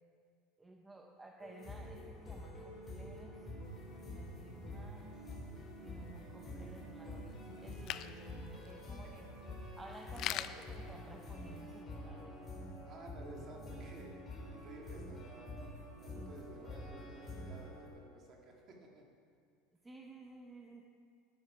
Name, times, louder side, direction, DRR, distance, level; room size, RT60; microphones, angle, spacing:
voice 1, 0.6-3.5 4.0-5.1 5.8-9.3 9.7-12.4 19.8-20.8, right 2 dB, 10° right, 1 dB, 0.6 m, -54 dB
sound 1, 1.4-17.9, left 1 dB, 15° left, 2.6 m, -47 dB
sound 2, 3.7-11.8, left 12 dB, 40° left, 0.3 m, -48 dB
voice 2, 12.8-14.1 14.5-19.1, right 2 dB, 30° right, 0 dB, 1.7 m, -54 dB
11.5 x 9.9 x 4.8 m, 2.3 s
cardioid pair, 170°, 0 cm